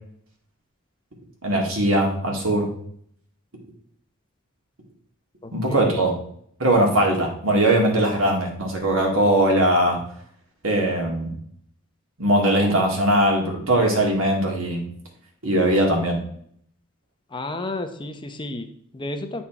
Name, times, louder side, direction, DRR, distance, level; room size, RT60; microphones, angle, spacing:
voice 1, 1.4-2.7 5.5-6.2 6.6-10.0 10.6-11.3 12.2-14.9 15.4-16.2, right 1 dB, 75° right, 0 dB, 2.1 m, -20 dB
voice 2, 5.4-6.0 17.3-19.4, left 2 dB, 25° left, 7 dB, 0.7 m, -32 dB
8.5 x 4.3 x 4.4 m, 0.64 s
head